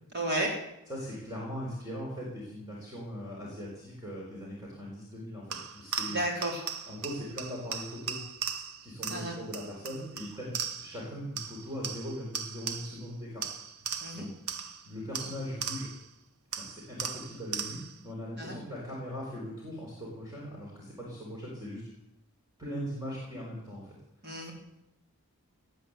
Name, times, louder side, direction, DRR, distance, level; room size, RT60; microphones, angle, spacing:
voice 1, 0.1-0.6 6.1-6.6 9.1-9.3 14.0-14.2 18.4-18.6 24.2-24.5, right 1 dB, 45° right, 0 dB, 4.4 m, -32 dB
voice 2, 0.9-6.2 6.9-8.2 8.8-13.4 14.1-14.3 14.8-15.9 16.5-21.8 22.6-23.9, equal, 15° right, -4 dB, 4.5 m, -40 dB
sound 1, 5.5-11.1 11.4-13.1 13.4-16.1 16.5-18.0, right 7 dB, 75° right, 1.1 m, -38 dB
18.0 x 9.5 x 8.1 m, 0.85 s
head